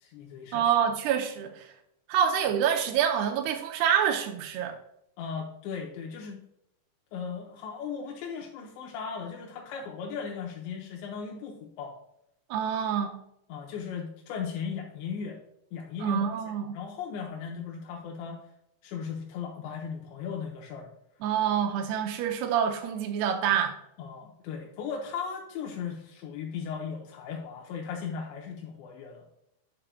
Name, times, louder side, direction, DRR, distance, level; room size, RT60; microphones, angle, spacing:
voice 1, 0.0-0.7 5.2-6.4 7.1-11.9 13.5-15.4 15.7-16.3 16.7-18.4 18.8-20.9 24.0-29.3, left 6 dB, 85° left, -1 dB, 3.0 m, -37 dB
voice 2, 0.5-1.7 2.1-4.7 12.5-13.2 16.0-16.7 21.2-23.7, right 8 dB, 85° right, 3 dB, 2.4 m, -27 dB
8.7 x 6.8 x 2.2 m, 0.78 s
omnidirectional pair, 5.1 m